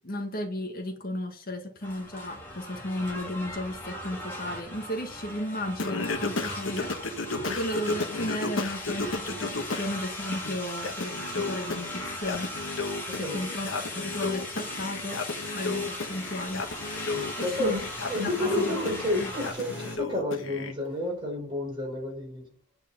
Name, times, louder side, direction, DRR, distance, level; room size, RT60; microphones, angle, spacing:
voice 1, 0.0-7.0 7.6-12.5 13.1-13.7 13.9-15.3 15.5-16.7 17.4-17.7 18.2-18.8 19.2-19.3, left 1 dB, 50° left, 1.6 m, -34 dB
sound 1, 1.8-19.5, left 1 dB, 10° left, 2.7 m, -38 dB
Singing, 5.8-9.9 10.3-20.7, left 3 dB, 80° left, 1.3 m, -33 dB
sound 2, 9.6-20.0, equal, 10° right, 4.0 m, -47 dB
voice 2, 13.1-13.4 17.1-22.5, left 1 dB, 25° right, 4.1 m, -31 dB
8.9 x 4.9 x 7.2 m
head